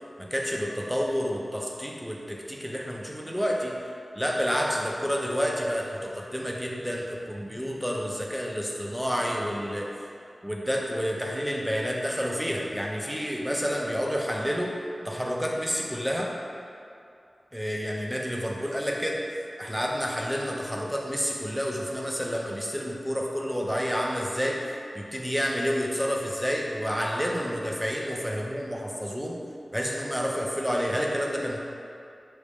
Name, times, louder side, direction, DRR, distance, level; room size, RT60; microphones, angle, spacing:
voice 1, 0.2-3.8 4.1-9.9 10.4-14.7 15.0-16.3 17.5-19.2 19.6-29.4 29.7-31.6, equal, ahead, -2 dB, 0.6 m, -29 dB
6.3 x 2.1 x 3.4 m, 2.5 s
wide cardioid pair, 65°, 0 cm